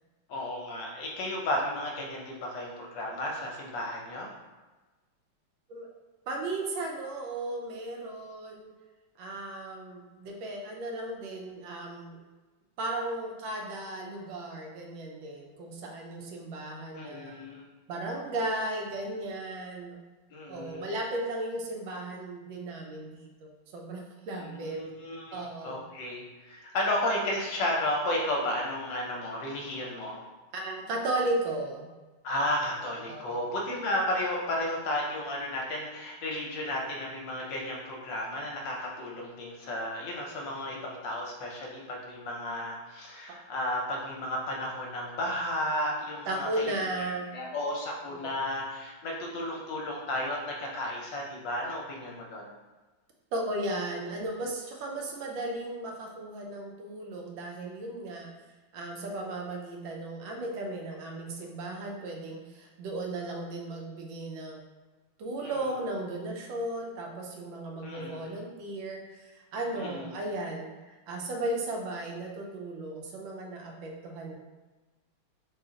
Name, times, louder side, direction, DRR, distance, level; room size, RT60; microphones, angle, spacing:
voice 1, 0.3-4.3 16.9-17.7 20.3-20.9 24.4-30.2 32.2-52.5 65.4-65.6 67.8-68.3 69.8-70.1, left 1 dB, 70° left, -1 dB, 1.3 m, -33 dB
voice 2, 6.3-8.7 9.2-12.2 12.8-17.4 17.9-20.0 20.5-24.8 25.3-25.8 30.5-31.9 33.1-33.4 46.3-47.3 48.2-48.3 53.3-58.3 58.7-64.6 65.2-70.7 71.1-74.3, right 2 dB, 75° right, 0 dB, 1.3 m, -35 dB
3.8 x 2.4 x 3.8 m, 1.2 s
omnidirectional pair, 2.2 m